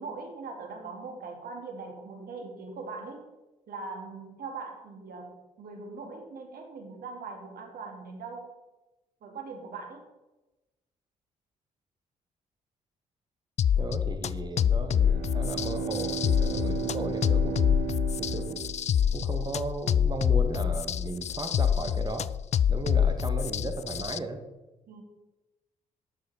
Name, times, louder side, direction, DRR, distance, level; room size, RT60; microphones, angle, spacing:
voice 1, 0.0-3.2 3.7-8.5 9.2-10.0 24.9-25.0, right 4 dB, 60° right, 2 dB, 2.4 m, -41 dB
sound 1, 13.6-24.2, left 8 dB, 40° left, 0.4 m, -26 dB
voice 2, 13.8-17.8 18.2-18.6 19.1-22.2 22.7-24.4, right 2 dB, 25° right, 5 dB, 1.9 m, -35 dB
Bowed string instrument, 14.9-19.5, right 6 dB, 80° right, 1.5 m, -35 dB
12.5 x 6.3 x 4.3 m, 1.0 s
hypercardioid pair, 45°, 18 cm